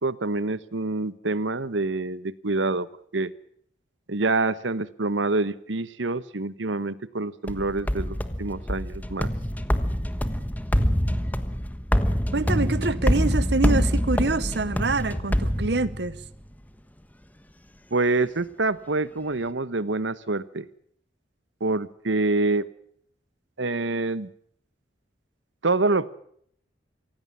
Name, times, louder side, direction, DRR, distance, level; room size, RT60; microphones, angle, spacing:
voice 1, 0.0-2.9 3.1-3.3 4.1-9.3 17.9-20.7 21.6-22.7 23.6-24.3 25.6-26.1, right 3 dB, 80° right, 1.2 m, -26 dB
sound 1, 7.5-16.3, equal, 10° left, 1.2 m, -25 dB
voice 2, 12.3-16.2, right 3 dB, 60° right, 0.9 m, -26 dB
25.5 x 17.0 x 7.3 m
head